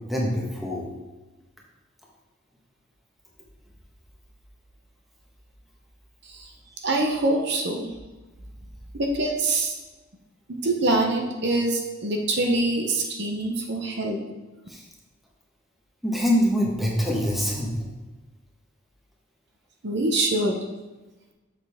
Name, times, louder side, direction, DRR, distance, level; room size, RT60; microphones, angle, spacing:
voice 1, 0.1-0.9 14.7-14.8 16.0-17.8, equal, ahead, -3 dB, 1.2 m, -24 dB
voice 2, 6.8-7.9 8.9-9.7 10.6-14.2 19.8-20.6, right 2 dB, 55° right, 1 dB, 0.8 m, -24 dB
6.9 x 6.6 x 3.5 m, 1.1 s
head